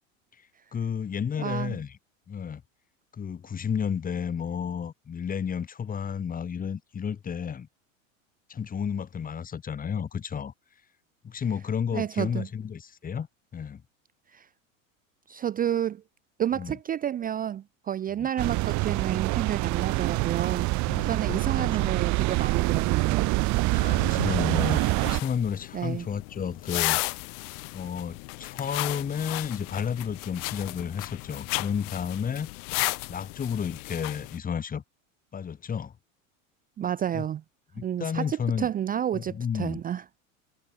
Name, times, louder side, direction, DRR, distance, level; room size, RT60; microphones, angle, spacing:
voice 1, 0.7-2.0 2.3-2.6 3.2-7.7 8.5-10.5 11.2-13.3 13.5-13.8 16.5-16.8 18.2-18.3 20.9-21.9 23.7-27.0 27.7-32.5 33.1-34.8 35.3-35.9 37.1-37.2 37.7-38.7 39.1-39.8, left 7 dB, 20° left, 1.2 m, -32 dB
voice 2, 1.4-1.8 11.9-12.5 14.3-14.5 15.3-16.0 16.4-20.7 21.0-23.3 25.7-26.1 36.8-37.4 37.8-40.0, right 10 dB, 20° right, 0.6 m, -30 dB
sound 1, 18.4-25.2, right 22 dB, 45° right, 0.9 m, -25 dB
sound 2, 24.6-34.4, left 32 dB, 60° left, 2.3 m, -34 dB
hypercardioid pair, 95°, 40 cm